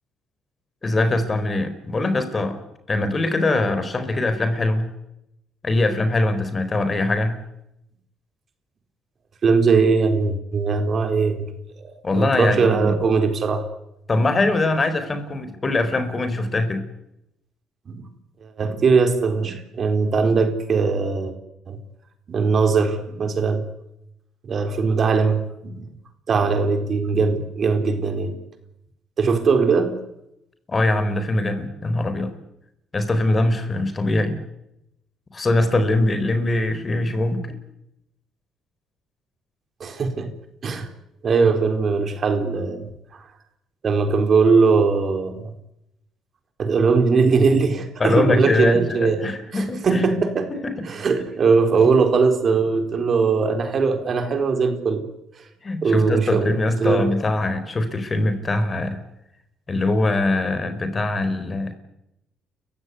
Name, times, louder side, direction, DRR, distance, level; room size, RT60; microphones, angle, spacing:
voice 1, 0.8-2.6 2.9-4.9 5.6-7.4 12.0-12.9 14.1-16.9 30.7-32.4 32.9-34.4 35.3-37.6 48.0-50.0 50.5-50.9 55.6-59.0 59.7-61.7, left 2 dB, 30° left, 10 dB, 4.4 m, -22 dB
voice 2, 9.4-11.5 11.8-13.6 17.9-18.1 18.4-21.3 21.7-21.8 22.3-23.6 24.4-25.9 26.3-28.4 29.2-30.0 39.8-40.3 40.6-40.9 41.2-42.9 43.8-45.5 46.6-50.5 50.9-55.0 55.8-56.5 56.8-57.1, right 4 dB, 50° right, 7 dB, 4.1 m, -20 dB
29.5 x 15.5 x 9.7 m, 0.84 s
supercardioid pair, 70°, 0 cm